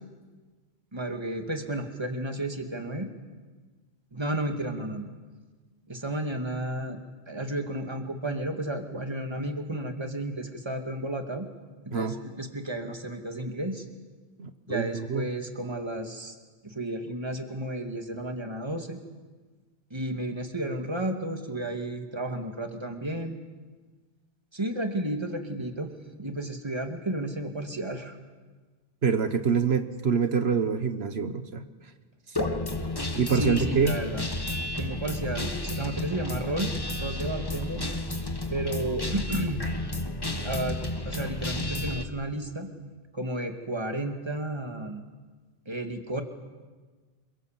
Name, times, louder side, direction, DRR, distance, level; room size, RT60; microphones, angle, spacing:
voice 1, 0.9-3.1 4.1-5.1 5.9-7.0 7.3-11.5 11.9-13.8 14.7-16.4 16.6-19.0 19.9-23.4 24.5-25.9 26.2-28.2 33.3-34.2 34.8-37.8 38.5-39.7 40.4-40.8 41.1-42.7 43.1-45.0 45.7-46.2, right 1 dB, 25° right, 5 dB, 2.2 m, -32 dB
voice 2, 14.4-15.3 29.0-31.6 33.2-33.9, right 6 dB, 80° right, 9 dB, 1.5 m, -26 dB
Guitar, 32.4-42.0, left 1 dB, 25° left, 1.5 m, -32 dB
27.5 x 24.0 x 7.4 m, 1.4 s
omnidirectional pair, 1.0 m